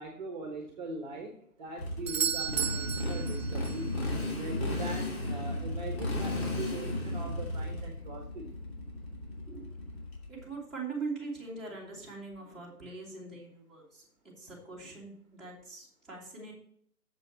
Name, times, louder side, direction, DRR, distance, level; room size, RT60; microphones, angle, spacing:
voice 1, 0.0-1.3 1.6-3.9 4.3-8.6, right 2 dB, 30° right, 3 dB, 1.3 m, -41 dB
Motorcycle, 1.8-10.4, left 1 dB, 40° left, 2.8 m, -34 dB
Doorbell, 2.1-3.9 8.0-8.1, right 9 dB, 60° right, 0.6 m, -33 dB
voice 2, 10.3-16.5, right 4 dB, ahead, -6 dB, 2.1 m, -42 dB
7.2 x 6.6 x 5.9 m, 0.64 s
figure-of-eight pair, 145°, 46 cm